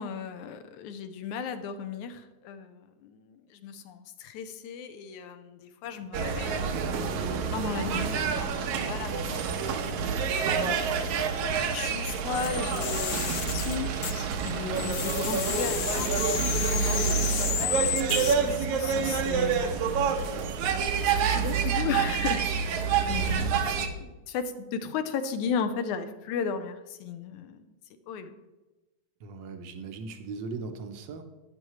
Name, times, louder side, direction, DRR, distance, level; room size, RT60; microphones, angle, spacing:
voice 1, 0.0-6.7 7.3-9.7 10.5-13.9 14.4-19.9 21.1-22.4 23.1-27.7 28.1-28.3, left 6 dB, 90° left, 9 dB, 2.2 m, -36 dB
sound 1, 6.1-23.9, right 6 dB, 90° right, 2.3 m, -28 dB
sound 2, 12.3-14.5 14.8-18.3, left 8 dB, 70° left, 1.8 m, -32 dB
voice 2, 22.8-23.6 29.2-31.2, right 4 dB, 70° right, 6 dB, 1.1 m, -40 dB
12.5 x 10.0 x 3.1 m, 1.1 s
omnidirectional pair, 3.3 m